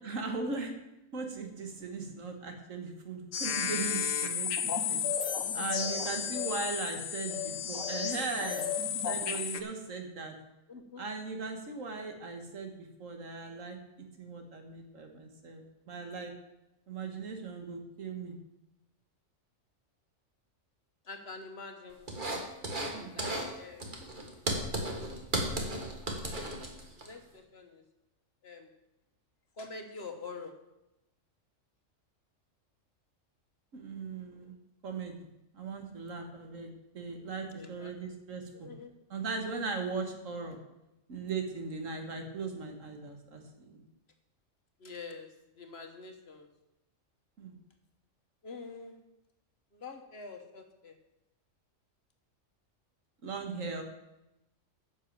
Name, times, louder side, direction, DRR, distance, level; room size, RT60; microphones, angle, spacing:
voice 1, 0.0-0.7 1.1-5.0 5.5-8.6 9.0-10.3 11.0-13.8 14.2-16.3 16.9-18.4 22.9-23.3 33.7-34.5 34.8-35.2 35.5-38.7 39.1-40.6 41.1-43.9 47.4-47.6 53.2-53.8, right 4 dB, 75° right, 4 dB, 1.9 m, -38 dB
sound 1, 3.3-9.6, left 8 dB, 80° left, 1.2 m, -33 dB
voice 2, 5.5-6.3 10.7-11.0 21.0-22.1 22.9-24.0 27.0-27.8 28.4-28.7 29.6-30.7 37.5-37.9 38.5-38.9 44.8-46.5 48.4-49.0 49.7-51.0, left 4 dB, 55° left, 6 dB, 1.4 m, -46 dB
sound 2, 22.1-22.9 23.2-23.5 23.8-27.1, right 1 dB, 40° right, 1.8 m, -34 dB
10.5 x 6.6 x 7.3 m, 0.91 s
omnidirectional pair, 1.3 m